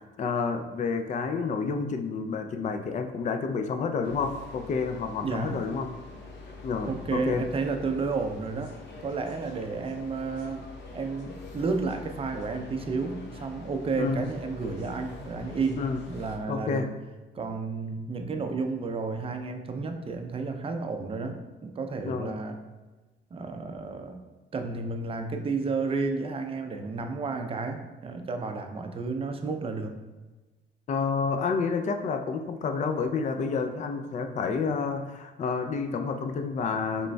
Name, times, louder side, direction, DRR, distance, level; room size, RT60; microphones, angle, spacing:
voice 1, 0.2-5.9 6.6-7.5 14.0-14.2 15.8-16.0 16.5-16.9 22.0-22.3 30.9-37.1, left 5 dB, 40° left, 7 dB, 0.4 m, -29 dB
sound 1, 4.0-16.4, left 3 dB, 60° left, 0.8 m, -45 dB
voice 2, 5.2-5.6 6.8-8.7 9.0-10.7 10.9-16.9 17.3-22.6 23.3-24.2 24.5-30.0, right 4 dB, 30° right, 5 dB, 0.5 m, -32 dB
5.0 x 3.2 x 2.3 m, 1.2 s
cardioid pair, 90°, 20 cm